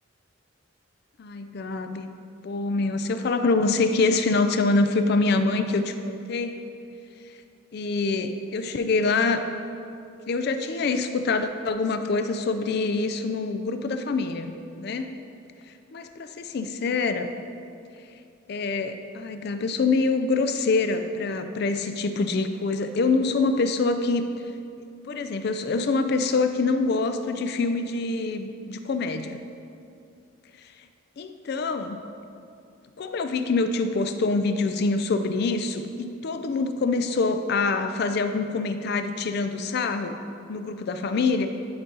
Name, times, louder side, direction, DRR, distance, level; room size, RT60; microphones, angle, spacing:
voice 1, 1.2-2.1 2.4-6.6 7.7-9.4 10.3-15.1 15.9-17.3 18.5-24.3 25.1-29.4 31.2-32.0 33.0-40.2 40.5-41.5, left 3 dB, 50° left, 8 dB, 0.3 m, -25 dB
10.0 x 4.0 x 3.8 m, 2.5 s
head